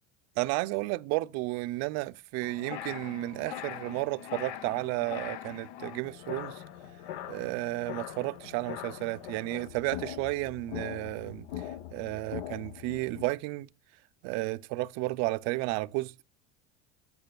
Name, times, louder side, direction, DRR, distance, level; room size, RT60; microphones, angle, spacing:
voice 1, 0.4-6.6 7.3-11.6 11.9-13.7 14.2-16.1, right 21 dB, 55° right, 0.4 m, -32 dB
sound 1, 2.4-13.3, left 11 dB, 80° left, 0.7 m, -42 dB
8.6 x 8.4 x 2.2 m
supercardioid pair, 120°, 32 cm